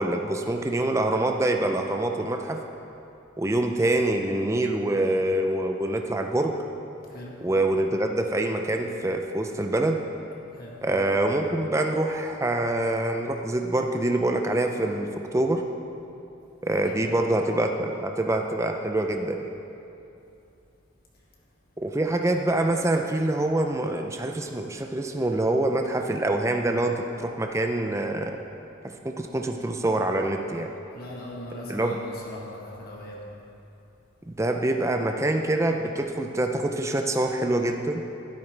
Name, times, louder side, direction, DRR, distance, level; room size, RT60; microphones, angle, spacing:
voice 1, 0.0-2.6 3.4-6.6 7.4-10.0 10.8-15.6 16.6-19.5 21.8-28.4 29.0-30.7 31.7-31.9 34.3-38.0, right 1 dB, 15° right, 4 dB, 0.4 m, -25 dB
voice 2, 30.9-33.2, left 1 dB, 50° left, -4 dB, 1.8 m, -39 dB
12.5 x 11.5 x 3.3 m, 2.8 s
head